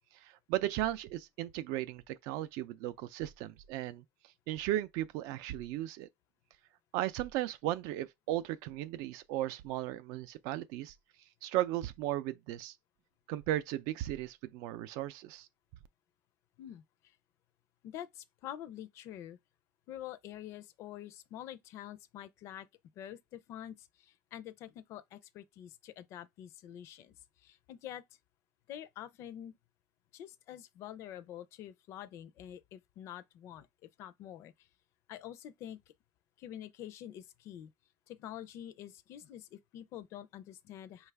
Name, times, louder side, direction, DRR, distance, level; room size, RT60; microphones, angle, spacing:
voice 1, 0.2-4.0 4.5-6.1 6.9-10.9 11.4-12.7 13.3-15.5, right 14 dB, 65° right, 0.4 m, -36 dB
voice 2, 16.6-17.1 17.8-19.4 19.9-22.7 23.0-28.0 28.7-29.5 30.1-34.7 35.1-35.8 36.4-37.7 38.1-41.1, left 11 dB, 45° left, 0.4 m, -47 dB
5.4 x 2.4 x 3.3 m
cardioid pair, 160°, 7 cm